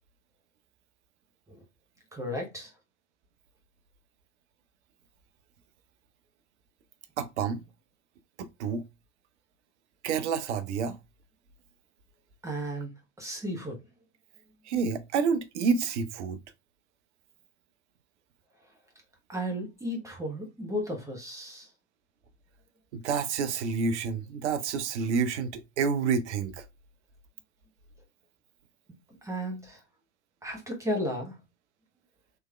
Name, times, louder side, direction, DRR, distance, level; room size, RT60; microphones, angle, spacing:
voice 1, 2.1-2.7 12.4-12.9 13.2-13.8 19.3-21.7 29.2-29.8 30.4-31.4, equal, 10° right, 0.9 m, -34 dB
voice 2, 7.2-7.6 8.4-8.8 10.0-11.0 14.7-16.4 22.9-26.6, right 5 dB, 60° right, 0.6 m, -29 dB
3.3 x 3.1 x 2.2 m
figure-of-eight pair, 85°, 39 cm